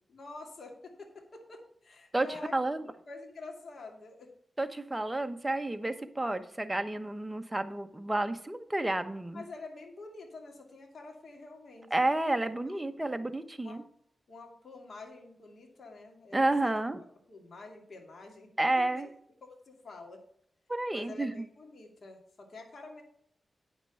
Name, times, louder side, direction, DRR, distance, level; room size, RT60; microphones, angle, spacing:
voice 1, 0.1-2.5 3.1-4.3 9.3-11.9 12.4-13.0 13.6-13.8 14.3-16.7 17.3-19.1 19.4-20.2 20.9-23.0, left 3 dB, 65° left, 2 dB, 2.4 m, -48 dB
voice 2, 2.1-2.8 4.6-9.4 11.9-13.8 16.3-17.0 18.6-19.1 20.7-21.5, right 2 dB, 15° right, 8 dB, 1.0 m, -31 dB
9.2 x 5.9 x 5.6 m, 0.68 s
cardioid pair, 65°, 0 cm